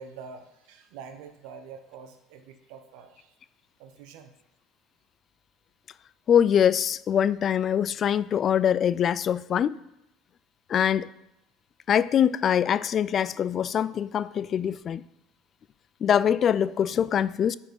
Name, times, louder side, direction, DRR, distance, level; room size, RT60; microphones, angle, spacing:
voice 1, 0.0-3.4 3.8-4.4, right 5 dB, 70° right, 1.1 m, -45 dB
voice 2, 6.3-9.8 10.7-11.1 11.9-15.1 16.0-17.6, left 9 dB, 45° left, 0.3 m, -23 dB
10.0 x 4.4 x 5.3 m
hypercardioid pair, 80°, 0 cm